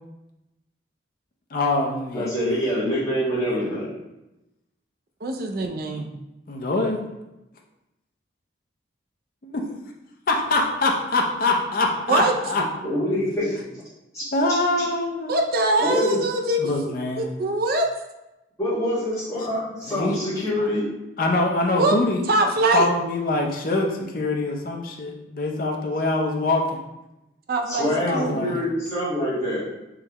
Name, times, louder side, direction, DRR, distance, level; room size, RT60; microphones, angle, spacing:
voice 1, 1.5-2.3 3.6-3.7 5.9-6.0 6.5-7.0 9.4-9.6 10.3-12.6 13.1-13.3 14.3-15.3 16.6-17.3 19.9-20.2 20.6-20.7 21.2-22.2 22.7-26.8 28.0-28.6, left 2 dB, 45° left, 1 dB, 0.5 m, -24 dB
voice 2, 2.1-3.9 12.8-13.5 14.1-14.2 15.8-16.2 18.6-20.9 27.7-29.7, left 1 dB, 15° left, -12 dB, 1.3 m, -25 dB
voice 3, 5.2-6.1 12.1-12.3 15.3-16.7 17.2-17.9 21.8-21.9 22.3-22.9 27.5-28.5, right 2 dB, 50° right, 3 dB, 0.4 m, -23 dB
3.7 x 3.2 x 2.9 m, 0.95 s
head